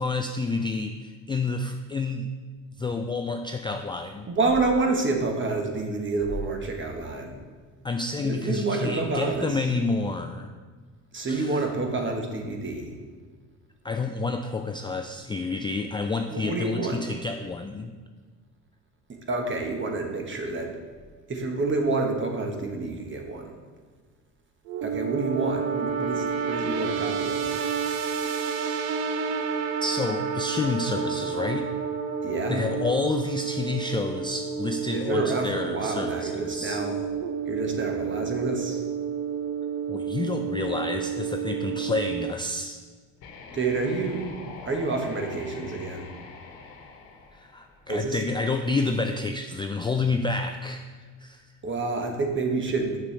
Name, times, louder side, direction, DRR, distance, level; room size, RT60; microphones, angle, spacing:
voice 1, 0.0-2.3 2.8-4.3 7.8-10.5 11.3-11.6 13.8-18.0 29.8-31.7 32.5-36.8 39.9-42.8 47.3-50.8 51.2-51.5, left 3 dB, 15° left, 5 dB, 0.3 m, -29 dB
voice 2, 4.3-7.4 8.2-9.5 11.1-12.9 16.3-16.9 19.3-20.7 21.3-23.5 24.8-27.6 32.2-32.7 34.9-37.0 37.5-38.8 43.5-44.3 44.6-46.1 47.9-48.2 51.6-53.0, right 3 dB, 35° right, 3 dB, 1.4 m, -28 dB
sound 1, 24.7-42.3, right 6 dB, 65° right, 0.6 m, -30 dB
sound 2, 43.2-48.1, left 4 dB, 70° left, 1.1 m, -44 dB
7.0 x 6.7 x 3.4 m, 1.5 s
supercardioid pair, 75°, 36 cm